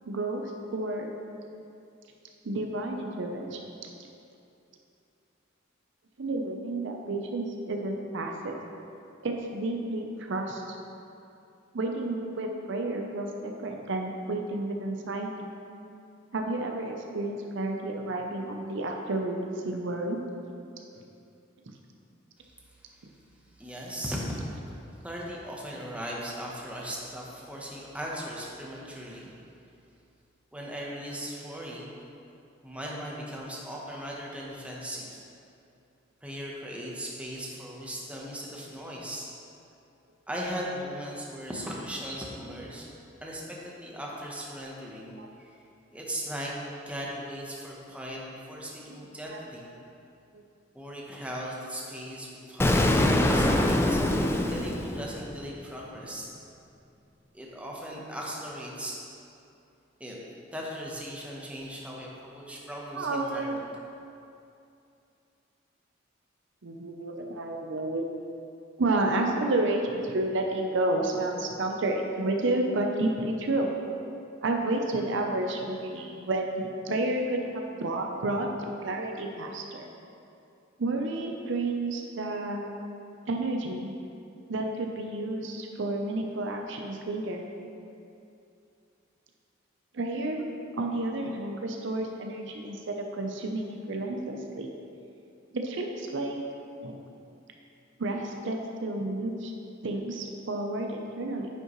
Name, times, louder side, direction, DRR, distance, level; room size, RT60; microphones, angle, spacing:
voice 1, 0.1-0.4 0.7-1.1 2.4-3.6 6.2-8.6 9.2-10.6 11.7-15.3 16.3-20.2 45.2-45.3 48.9-49.0 49.3-49.4 50.3-50.4 63.0-63.6 66.6-68.1 68.8-73.7 74.4-79.9 80.8-82.8 83.3-83.9 84.5-87.4 89.9-90.4 90.8-94.7 95.6-96.4 96.8-97.0 98.0-99.5 99.8-101.5, right 2 dB, 70° right, 2 dB, 0.6 m, -31 dB
voice 2, 23.6-24.8 25.0-29.4 30.5-31.9 32.6-35.2 36.2-39.3 40.3-42.9 43.2-45.6 45.9-46.5 46.9-48.2 48.5-49.7 50.7-56.3 57.3-59.0 60.0-60.2 60.5-63.6, equal, 5° right, -4 dB, 0.9 m, -38 dB
Explosion, 52.6-55.5, left 1 dB, 10° left, 0.3 m, -24 dB
9.4 x 5.5 x 3.1 m, 2.6 s
head